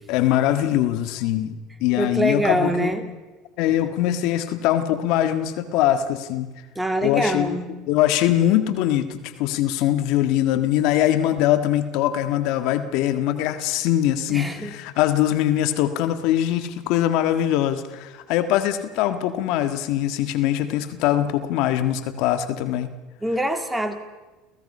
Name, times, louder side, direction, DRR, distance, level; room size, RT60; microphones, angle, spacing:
voice 1, 0.1-3.0 3.6-6.5 7.0-7.6 7.9-22.9, left 12 dB, 65° left, 10 dB, 1.7 m, -22 dB
voice 2, 2.0-3.1 6.8-7.7 14.3-14.7 23.2-24.0, right 1 dB, 10° right, 7 dB, 2.4 m, -24 dB
29.0 x 16.5 x 5.5 m, 1.2 s
supercardioid pair, 95°, 0 cm